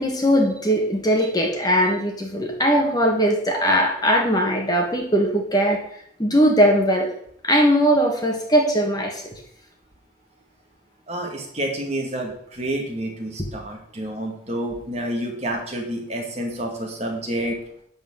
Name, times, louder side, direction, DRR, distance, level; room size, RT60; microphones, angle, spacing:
voice 1, 0.0-5.8 6.2-7.1 7.4-9.3 13.4-13.5, equal, 20° left, 1 dB, 1.6 m, -20 dB
voice 2, 11.1-17.6, right 1 dB, 35° right, 1 dB, 2.0 m, -29 dB
11.5 x 4.4 x 7.4 m, 0.68 s
head